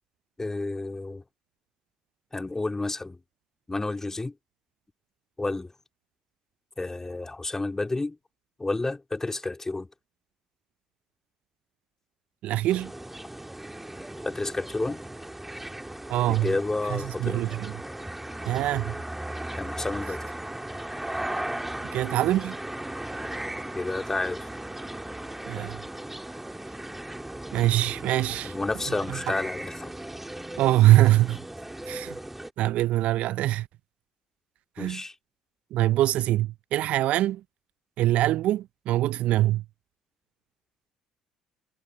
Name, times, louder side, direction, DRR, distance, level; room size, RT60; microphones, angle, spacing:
voice 1, 0.4-1.2 2.3-3.2 3.7-4.3 5.4-5.7 6.8-8.2 8.6-9.9 14.2-15.0 16.3-17.5 19.6-20.3 23.7-24.5 28.4-29.9 34.8-35.1, left 2 dB, 15° left, 3.2 m, -30 dB
voice 2, 12.4-12.9 16.1-16.5 16.9-17.7 18.4-19.0 21.9-22.6 25.5-25.8 27.5-28.5 29.1-29.2 30.6-31.4 31.9-32.2 32.6-33.7 34.8-35.0 35.7-37.4 38.0-39.6, right 15 dB, 60° right, 0.8 m, -23 dB
sound 1, 12.7-32.5, right 1 dB, 10° right, 2.5 m, -37 dB
hypercardioid pair, 55°, 3 cm